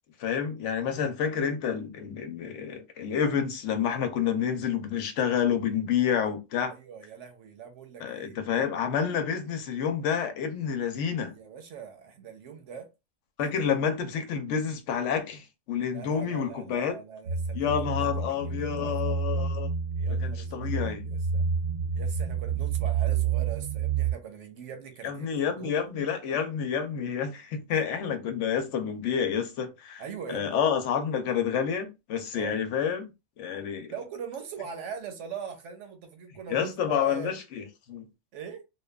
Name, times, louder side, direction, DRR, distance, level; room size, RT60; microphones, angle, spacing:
voice 1, 0.2-6.7 8.0-11.3 13.4-17.0 17.5-19.7 20.2-21.0 25.0-30.0 30.3-33.1 33.4-33.9 36.5-38.0, left 7 dB, 80° left, 0.9 m, -29 dB
voice 2, 6.7-8.4 11.3-12.9 15.9-19.2 20.0-21.5 21.9-25.8 27.7-27.8 30.0-30.6 32.3-32.6 33.9-37.3 38.3-38.7, right 7 dB, 80° right, 1.0 m, -42 dB
sound 1, 17.2-24.1, right 6 dB, 50° right, 0.7 m, -29 dB
2.8 x 2.2 x 2.2 m
omnidirectional pair, 1.2 m